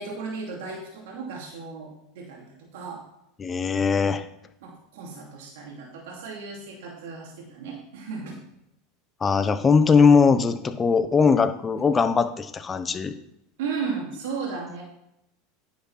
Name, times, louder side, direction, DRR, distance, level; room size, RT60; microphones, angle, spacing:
voice 1, 0.0-3.0 4.6-8.4 13.6-14.8, right 5 dB, 75° right, -2 dB, 2.9 m, -35 dB
voice 2, 3.4-4.3 9.2-13.1, left 5 dB, 20° left, 10 dB, 1.0 m, -20 dB
10.0 x 6.0 x 5.9 m, 0.83 s
supercardioid pair, 110°, 0 cm